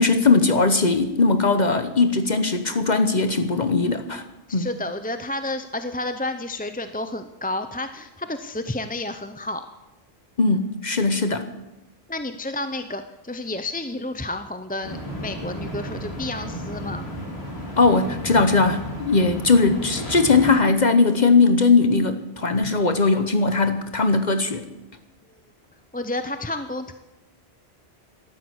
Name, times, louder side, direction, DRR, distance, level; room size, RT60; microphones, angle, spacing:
voice 1, 0.0-4.2 4.5-4.7 10.4-11.5 17.8-24.7, left 3 dB, 45° left, 9 dB, 1.1 m, -19 dB
voice 2, 4.5-9.7 12.1-17.1 25.9-26.9, left 2 dB, 10° left, 9 dB, 0.5 m, -30 dB
sound 1, 14.8-20.5, equal, 80° left, 3.7 m, -33 dB
14.0 x 12.5 x 8.0 m, 0.98 s
omnidirectional pair, 1.1 m